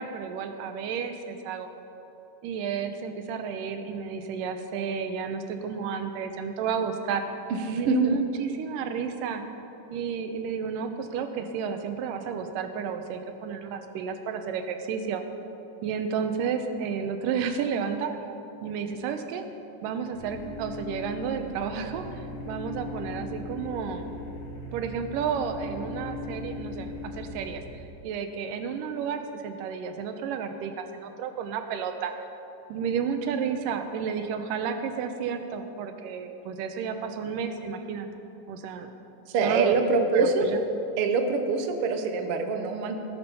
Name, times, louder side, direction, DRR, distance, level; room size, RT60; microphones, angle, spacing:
voice 1, 0.0-1.7 2.4-7.2 7.7-9.4 9.9-15.2 15.8-18.1 18.6-19.5 19.8-24.1 24.7-32.1 32.7-38.1 38.5-38.9 39.4-40.6, right 6 dB, 85° right, 7 dB, 2.4 m, -31 dB
voice 2, 7.5-8.2 39.3-40.5 41.0-43.0, right 3 dB, 70° right, 5 dB, 1.4 m, -25 dB
sound 1, 20.1-27.5, left 2 dB, 75° left, 3.4 m, -38 dB
18.5 x 7.0 x 5.6 m, 3.0 s
omnidirectional pair, 3.8 m